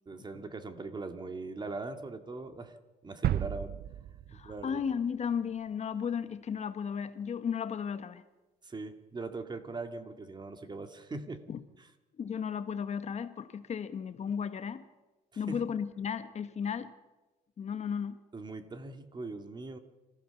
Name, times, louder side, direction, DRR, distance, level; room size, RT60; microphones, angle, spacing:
voice 1, 0.1-2.8 3.0-3.8 4.3-4.8 8.6-11.5 11.8-11.9 15.3-15.7 18.3-19.8, right 3 dB, 25° right, 2.1 m, -41 dB
sound 1, 3.2-5.2 5.6-5.7, right 12 dB, 65° right, 0.6 m, -34 dB
voice 2, 4.3-8.2 11.5-11.6 12.2-14.8 15.4-16.9 17.6-18.2, left 7 dB, 40° left, 1.3 m, -34 dB
26.5 x 15.5 x 7.1 m
cardioid pair, 110°, 17 cm